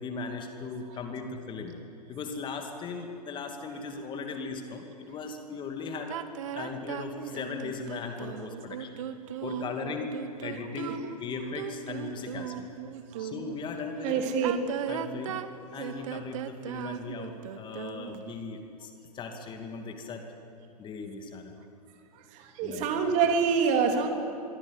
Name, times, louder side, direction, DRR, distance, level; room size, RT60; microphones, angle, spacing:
voice 1, 0.0-1.8 2.1-6.2 6.5-8.9 9.4-12.7 13.2-14.3 14.9-15.4 15.7-20.2 20.8-21.5 22.6-22.9, left 4 dB, 25° left, 5 dB, 2.4 m, -38 dB
sound 1, 6.1-13.6 14.3-18.3, right 10 dB, 50° right, 1.5 m, -37 dB
voice 2, 14.0-14.5 22.3-24.1, right 6 dB, 35° right, 4 dB, 3.5 m, -26 dB
26.0 x 23.0 x 8.3 m, 2.6 s
figure-of-eight pair, 105°, 21 cm